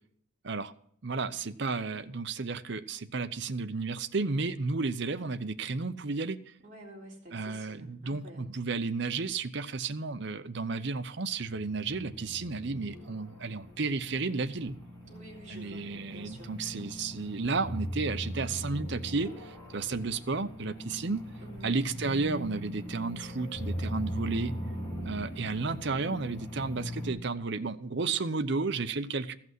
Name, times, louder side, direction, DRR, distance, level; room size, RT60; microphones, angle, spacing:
voice 1, 1.0-6.4 7.3-14.8 15.5-21.2 21.6-24.5 25.1-29.4, right 4 dB, 55° right, 0.7 m, -32 dB
voice 2, 6.6-8.5 15.1-16.5 21.4-21.7, right 1 dB, 35° right, 3.6 m, -49 dB
sound 1, 11.4-27.1, equal, 20° left, 3.9 m, -40 dB
15.0 x 6.0 x 7.6 m
head